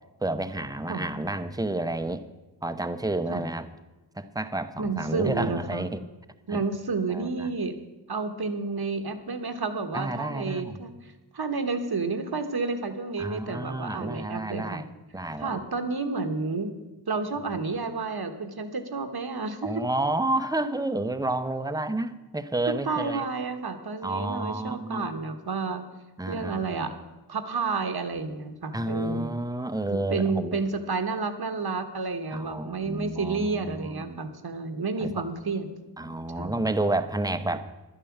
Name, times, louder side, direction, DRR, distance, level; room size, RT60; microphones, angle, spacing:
voice 1, 0.2-2.2 2.6-3.7 4.2-6.0 6.5-6.6 7.1-7.5 9.9-10.8 13.2-14.8 15.1-15.6 19.6-23.2 24.0-25.1 26.2-26.9 28.7-30.6 32.3-34.2 35.0-35.2 36.0-37.7, right 2 dB, 10° right, 10 dB, 0.8 m, -30 dB
voice 2, 4.8-5.9 6.5-7.7 8.1-14.8 15.4-16.7 17.1-19.8 22.7-25.9 26.3-26.9 27.3-29.3 29.9-35.7 36.3-36.7, right 4 dB, 65° right, 8 dB, 1.4 m, -30 dB
11.0 x 10.0 x 7.3 m, 1.1 s
wide cardioid pair, 80°, 40 cm